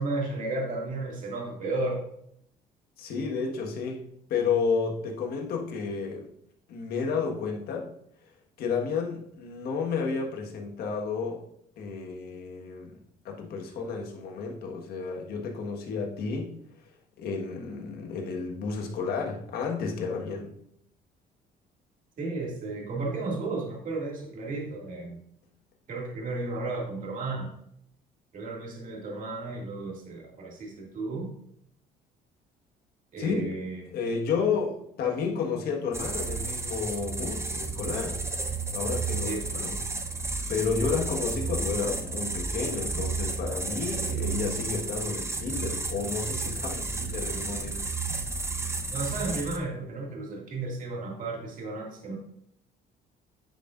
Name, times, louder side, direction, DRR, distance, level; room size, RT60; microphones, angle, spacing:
voice 1, 0.0-2.0 22.2-25.2 25.9-27.5 28.3-31.3 33.1-33.8 39.2-39.7 48.9-52.2, right 3 dB, 50° right, -1 dB, 2.2 m, -33 dB
voice 2, 3.0-6.3 6.7-7.9 8.6-11.4 11.8-13.0 13.2-16.5 16.8-16.9 17.2-20.5 33.2-33.3 33.9-38.2 38.7-39.8 40.5-47.9, left 5 dB, 70° left, 1 dB, 1.5 m, -31 dB
sound 1, 35.9-49.6, right 3 dB, 15° right, 0.8 m, -32 dB
9.7 x 5.4 x 2.5 m, 0.72 s
cardioid pair, 110°, 17 cm